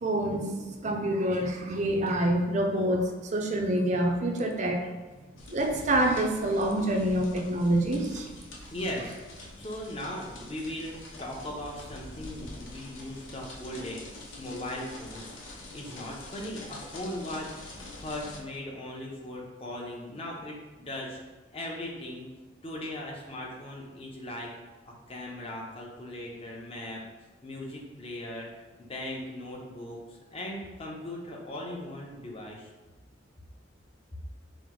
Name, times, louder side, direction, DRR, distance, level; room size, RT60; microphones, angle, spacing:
voice 1, 0.0-4.9 5.5-8.3, right 1 dB, 40° right, 3 dB, 0.5 m, -27 dB
sound 1, 5.4-18.4, left 2 dB, 90° left, 0.7 m, -45 dB
voice 2, 8.7-14.0 14.4-21.2 21.5-22.3 22.6-24.5 24.8-27.0 27.4-28.5 28.8-32.7, left 1 dB, 30° left, -2 dB, 0.7 m, -38 dB
4.9 x 2.0 x 3.7 m, 1.2 s
head